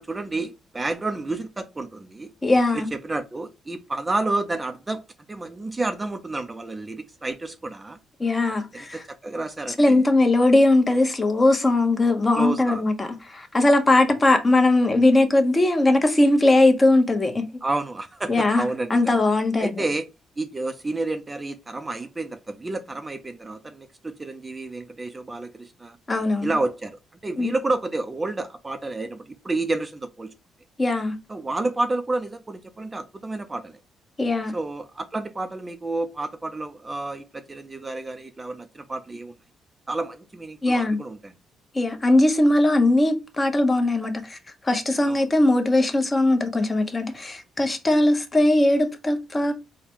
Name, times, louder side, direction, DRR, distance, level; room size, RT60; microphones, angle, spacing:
voice 1, 0.0-2.3 2.7-5.0 5.3-8.0 8.7-10.0 12.4-12.8 17.6-19.1 19.6-20.1 20.4-26.0 26.4-30.3 31.3-33.8 34.5-39.3 39.9-41.3 45.1-45.2, right 2 dB, 20° right, 0.5 m, -30 dB
voice 2, 2.4-2.9 8.2-9.0 9.8-17.4 18.3-18.6 18.9-19.7 26.1-26.5 27.4-27.5 30.8-31.2 34.2-34.5 40.6-41.0 41.7-44.4 44.6-49.5, left 2 dB, 25° left, 0.9 m, -20 dB
4.1 x 2.2 x 4.4 m
cardioid pair, 90°, 0 cm